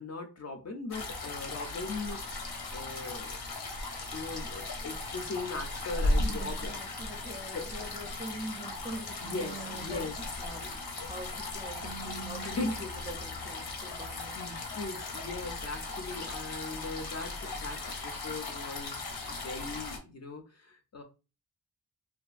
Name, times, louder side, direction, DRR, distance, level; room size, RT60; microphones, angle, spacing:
voice 1, 0.0-2.2 2.7-3.4 4.1-6.7 7.5-7.7 9.2-10.2 10.6-10.8 12.4-12.8 14.4-21.0, left 3 dB, 45° left, 0.4 m, -39 dB
sound 1, 0.9-20.0, left 2 dB, 85° left, 0.8 m, -37 dB
sound 2, 6.1-6.7 9.2-10.2 11.8-12.8, right 8 dB, 85° right, 0.5 m, -45 dB
voice 2, 6.2-9.3 9.5-10.0 10.4-10.7 11.1-14.4, right 1 dB, 15° right, 0.4 m, -42 dB
2.5 x 2.5 x 2.3 m
wide cardioid pair, 125°, 37 cm